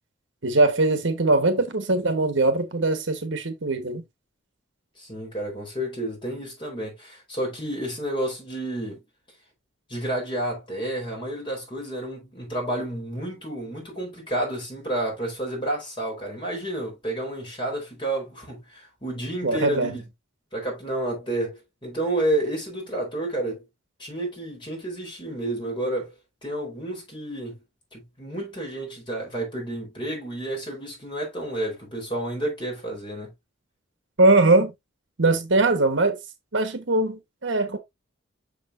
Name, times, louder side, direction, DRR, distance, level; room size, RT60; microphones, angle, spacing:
voice 1, 0.4-4.0 19.4-20.0 34.2-34.7 35.2-36.2 36.5-37.8, right 2 dB, 65° right, 1.3 m, -21 dB
voice 2, 5.0-9.0 9.9-20.0 20.5-23.6 24.0-26.1 26.4-27.6 27.9-33.3, right 1 dB, 25° left, 4.2 m, -30 dB
6.6 x 6.5 x 2.6 m
head